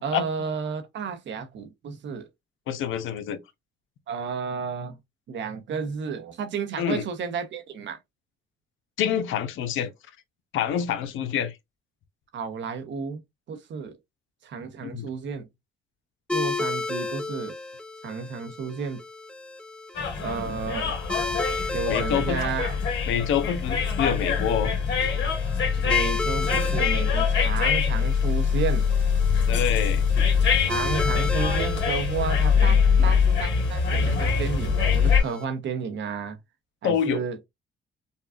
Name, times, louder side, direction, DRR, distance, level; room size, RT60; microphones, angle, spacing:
voice 1, 0.0-2.3 4.1-5.0 5.3-8.0 12.3-13.2 13.5-14.0 14.4-15.5 16.3-17.6 18.0-19.0 20.2-20.9 21.7-22.8 25.8-28.8 30.7-36.4 36.8-37.4, right 6 dB, 70° right, 1.0 m, -32 dB
voice 2, 2.7-3.4 6.8-7.0 9.0-9.9 10.5-11.5 14.8-15.1 21.9-22.4 23.1-24.8 29.5-30.0 33.0-33.1 34.0-34.2 36.8-37.2, left 8 dB, 85° left, 0.8 m, -26 dB
sound 1, 16.3-35.4, left 3 dB, 5° left, 0.6 m, -35 dB
sound 2, 19.9-35.2, left 6 dB, 65° left, 1.8 m, -23 dB
5.3 x 2.3 x 2.4 m
cardioid pair, 90°, 20 cm